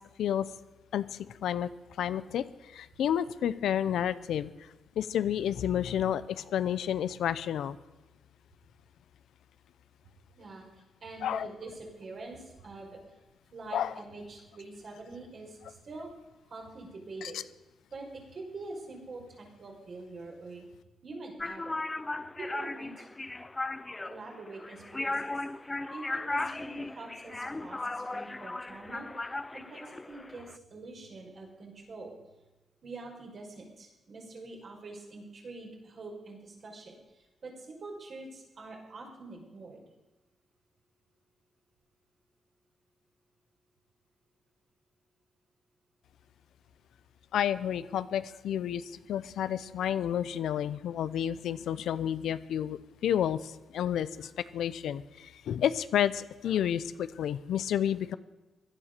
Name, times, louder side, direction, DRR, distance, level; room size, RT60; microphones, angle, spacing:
voice 1, 0.9-1.7 2.0-7.8 11.2-11.5 13.7-13.9 17.2-17.4 47.3-58.2, left 10 dB, 85° left, 14 dB, 0.7 m, -31 dB
voice 2, 11.0-12.9 13.5-16.1 16.5-17.4 17.9-20.6 21.0-21.8 22.4-23.1 24.0-25.3 25.9-29.1 29.5-32.2 32.8-39.8, right 3 dB, 50° right, 1 dB, 5.1 m, -45 dB
sound 1, 21.4-30.6, left 2 dB, 20° left, 0.6 m, -37 dB
16.0 x 11.5 x 6.7 m, 1.1 s
cardioid pair, 90°, 0 cm